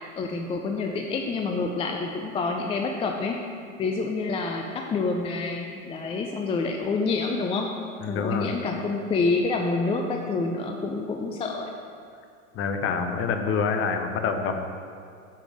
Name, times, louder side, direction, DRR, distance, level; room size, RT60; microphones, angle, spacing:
voice 1, 0.1-3.4 3.8-7.7 8.1-11.7, left 3 dB, 15° left, 2 dB, 0.4 m, -27 dB
voice 2, 8.0-8.6 12.5-14.6, left 5 dB, 35° left, 6 dB, 0.8 m, -26 dB
8.3 x 5.5 x 5.0 m, 2.3 s
hypercardioid pair, 90°, 40 cm